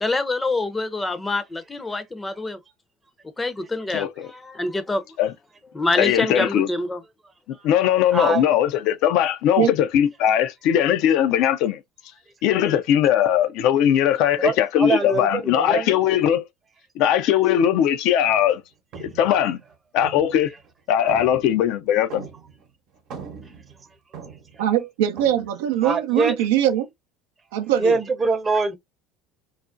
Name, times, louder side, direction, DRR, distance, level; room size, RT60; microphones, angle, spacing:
voice 1, 0.0-2.6 3.4-5.0 5.7-7.0, left 2 dB, 15° left, 0.5 m, -26 dB
voice 2, 3.9-4.3 5.2-5.3 6.0-6.7 7.6-11.8 12.4-16.4 17.0-18.6 19.0-19.6 19.9-20.5 20.9-22.3, left 10 dB, 65° left, 0.4 m, -20 dB
voice 3, 8.1-8.4 14.4-16.0 25.8-26.3 27.8-28.7, right 4 dB, 25° right, 0.7 m, -23 dB
sound 1, 18.3-18.6 18.9-20.7 21.1-22.7 23.0-24.7 25.1-25.5, right 6 dB, 60° right, 0.9 m, -41 dB
voice 4, 24.6-26.9 27.5-28.0, right 11 dB, 80° right, 0.5 m, -21 dB
2.4 x 2.1 x 2.5 m
hypercardioid pair, 85°, 0 cm